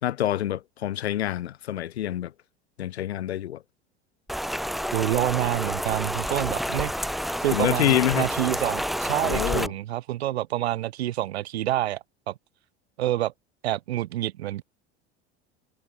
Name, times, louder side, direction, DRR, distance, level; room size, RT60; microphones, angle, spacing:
voice 1, 0.0-2.3 2.8-3.6 7.5-8.3 9.2-9.7, left 12 dB, 75° left, 1.2 m, -26 dB
Rain, 4.3-9.7, equal, ahead, 1.3 m, -29 dB
voice 2, 4.9-12.3 13.0-13.3 13.6-14.6, right 14 dB, 70° right, 3.3 m, -28 dB
figure-of-eight pair, 75°, 33 cm